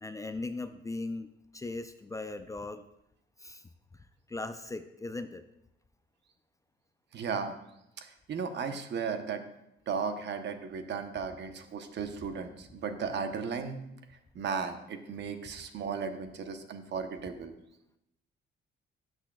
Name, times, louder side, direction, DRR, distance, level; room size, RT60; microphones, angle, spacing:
voice 1, 0.0-1.3 1.5-2.8 3.4-3.6 4.3-5.4, left 2 dB, 15° left, 9 dB, 0.4 m, -38 dB
voice 2, 7.1-7.6 8.0-9.4 9.9-13.8 14.3-17.5, right 6 dB, 60° right, 7 dB, 0.9 m, -35 dB
12.5 x 6.2 x 2.3 m, 0.83 s
cardioid pair, 90°, 20 cm